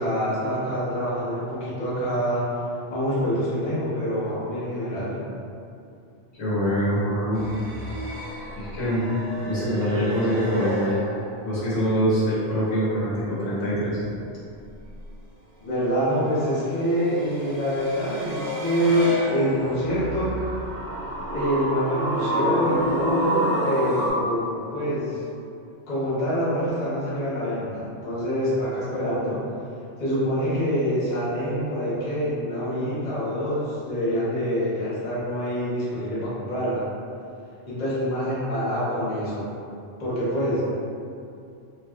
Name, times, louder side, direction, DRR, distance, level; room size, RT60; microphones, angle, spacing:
voice 1, 0.0-2.5 2.9-5.2 15.6-20.4 21.3-25.2 25.9-29.4 30.0-36.8 37.7-39.5 40.0-40.6, equal, 40° left, -10 dB, 0.9 m, -26 dB
voice 2, 6.4-7.4 8.6-9.0 9.4-11.0 11.4-14.0, equal, 85° left, -10 dB, 1.3 m, -24 dB
sound 1, 7.3-11.7 12.0-13.2 16.5-24.1, equal, 45° right, 0.6 m, -30 dB
2.9 x 2.8 x 2.4 m, 2.5 s
omnidirectional pair, 1.2 m